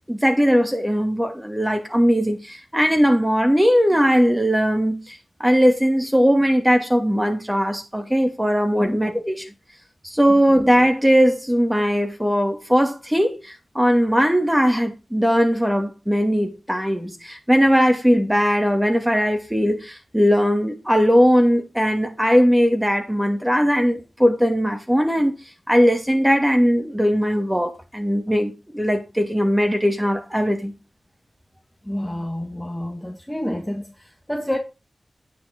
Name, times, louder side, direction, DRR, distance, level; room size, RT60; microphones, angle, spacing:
voice 1, 0.1-9.5 10.0-25.4 25.7-30.7, equal, 10° right, 2.6 m, -19 dB
voice 2, 31.8-34.6, left 1 dB, 5° left, 1.8 m, -28 dB
9.7 x 6.1 x 4.4 m
cardioid pair, 40°, 0 cm